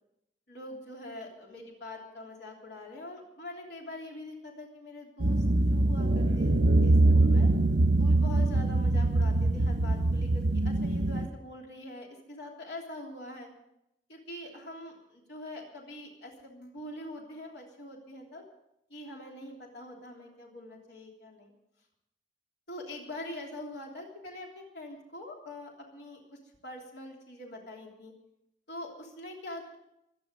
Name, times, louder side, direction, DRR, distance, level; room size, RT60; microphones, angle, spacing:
voice 1, 0.5-6.5 6.8-7.5 8.0-13.5 14.1-18.4 18.9-21.5 22.7-28.1 28.7-29.8, left 1 dB, 75° left, -1 dB, 3.2 m, -44 dB
sound 1, 5.2-11.3, right 2 dB, 80° right, 1.0 m, -24 dB
24.5 x 9.8 x 5.2 m, 0.81 s
head